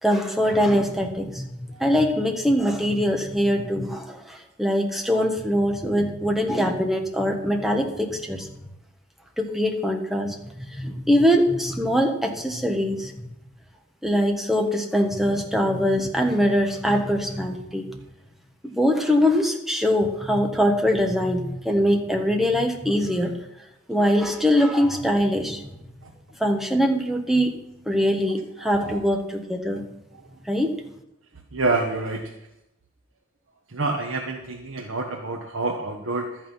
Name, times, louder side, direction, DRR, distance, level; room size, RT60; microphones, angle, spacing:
voice 1, 0.0-8.6 9.4-13.1 14.0-18.0 18.6-23.4 23.9-25.6 26.4-27.5 27.9-29.9 30.4-30.7, equal, ahead, 2 dB, 1.4 m, -23 dB
voice 2, 28.6-29.0 31.5-32.3 33.7-36.4, right 3 dB, 85° right, 1 dB, 1.3 m, -27 dB
13.0 x 8.8 x 5.7 m, 0.88 s
head